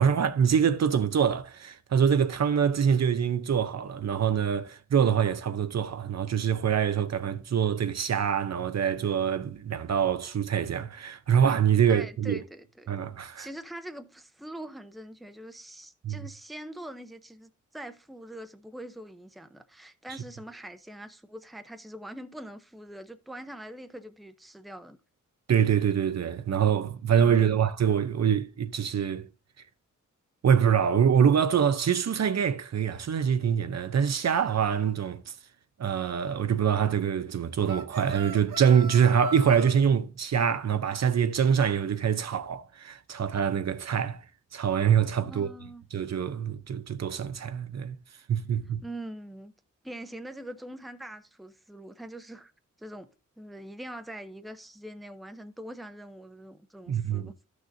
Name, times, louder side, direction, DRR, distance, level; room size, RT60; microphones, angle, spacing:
voice 1, 0.0-12.4 12.9-13.5 16.0-16.2 25.5-29.3 30.4-35.3 35.8-44.2 44.5-45.5 45.9-47.9 48.3-48.8 56.9-57.3, right 8 dB, 60° right, 0.6 m, -25 dB
voice 2, 11.9-12.9 13.4-25.0 27.2-27.6 45.2-45.9 48.8-49.5 49.8-52.5 52.8-53.1 53.4-57.3, right 1 dB, ahead, 0.6 m, -43 dB
sound 1, 37.6-39.7, right 3 dB, 85° right, 0.8 m, -38 dB
13.0 x 6.4 x 2.6 m
wide cardioid pair, 125°, 31 cm